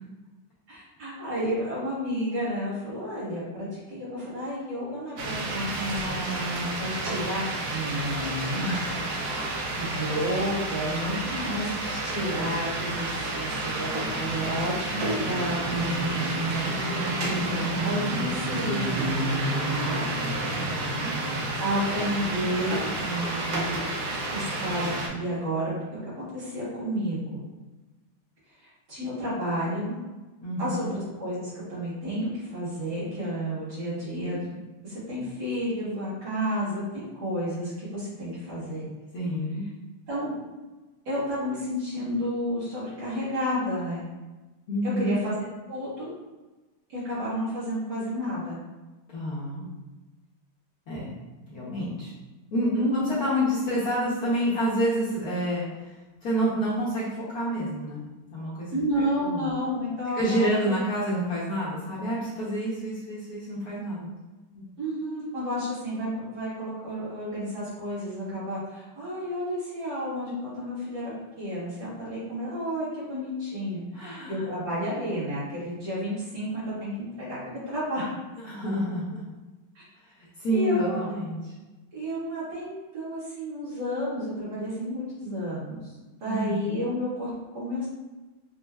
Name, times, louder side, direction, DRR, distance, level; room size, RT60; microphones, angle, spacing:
voice 1, 0.7-8.8 9.8-20.0 21.6-23.6 24.3-27.4 28.6-29.9 30.6-34.6 34.8-38.9 40.1-40.4 41.1-44.1 45.0-45.3 45.7-46.1 46.9-48.6 52.7-53.1 58.7-60.6 64.8-71.1 71.4-78.1 79.8-79.9 80.5-81.0 81.9-85.9 86.2-87.9, equal, 55° right, -10 dB, 1.9 m, -31 dB
sound 1, 5.2-25.1, right 2 dB, 75° right, 0.9 m, -30 dB
voice 2, 8.5-9.2 18.1-18.2 20.5-21.1 30.4-30.9 39.1-39.7 44.7-45.2 49.1-49.6 50.9-51.1 51.5-52.1 52.5-55.9 56.2-58.0 58.3-58.7 59.2-59.5 60.2-64.1 64.5-64.6 73.9-74.5 78.4-79.2 80.4-81.4 86.2-86.8, equal, 60° left, -9 dB, 1.1 m, -28 dB
5.2 x 2.2 x 2.3 m, 1.2 s
omnidirectional pair, 2.3 m